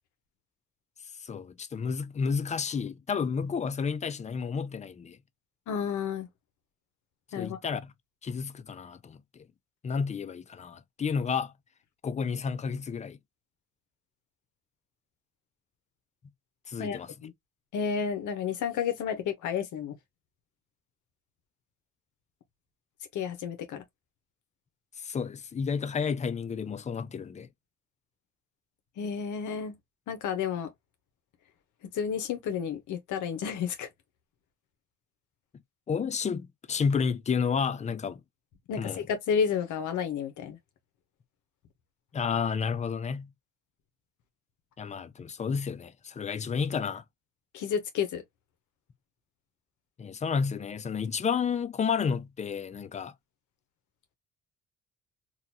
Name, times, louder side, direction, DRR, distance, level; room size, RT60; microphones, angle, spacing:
voice 1, 1.2-5.2 7.4-7.9 8.2-9.5 9.8-11.5 12.0-13.2 16.7-17.1 25.0-27.5 35.9-38.2 38.8-39.0 42.1-43.3 44.8-47.0 50.0-53.1, left 6 dB, 25° left, 0.4 m, -31 dB
voice 2, 5.7-6.3 7.3-7.6 16.8-17.3 17.7-20.0 23.1-23.8 29.0-29.8 30.1-30.7 31.9-33.9 38.7-40.6 47.5-48.2, left 7 dB, 80° left, 0.8 m, -31 dB
2.8 x 2.3 x 2.7 m
cardioid pair, 90°, 30 cm